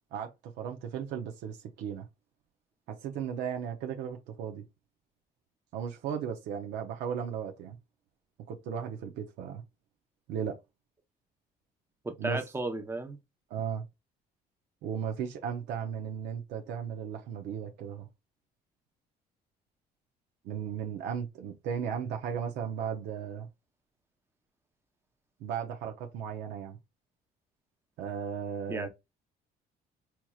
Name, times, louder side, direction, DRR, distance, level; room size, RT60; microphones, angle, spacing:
voice 1, 0.1-2.1 2.9-4.6 5.7-7.8 8.5-9.6 10.3-10.6 12.2-12.4 13.5-13.8 14.8-18.1 20.4-23.5 25.4-26.8 28.0-28.9, right 7 dB, 85° right, 0.7 m, -36 dB
voice 2, 12.0-13.2 28.7-28.9, right 2 dB, 15° right, 0.8 m, -34 dB
4.5 x 2.9 x 2.3 m
cardioid pair, 110°, 17 cm